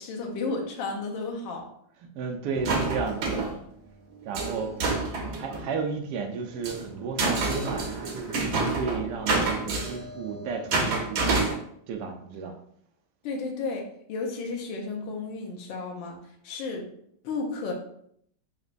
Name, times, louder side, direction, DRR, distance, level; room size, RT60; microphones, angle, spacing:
voice 1, 0.0-1.7 13.2-16.9 17.2-17.7, left 3 dB, 70° left, 1 dB, 1.4 m, -33 dB
voice 2, 2.1-3.4 4.2-4.7 5.3-11.4 11.9-12.5, right 5 dB, 80° right, 4 dB, 0.9 m, -33 dB
sound 1, 2.5-3.5 4.3-5.6 6.4-11.5, right 3 dB, 65° right, 1.1 m, -28 dB
4.2 x 2.9 x 2.5 m, 0.68 s
omnidirectional pair, 2.3 m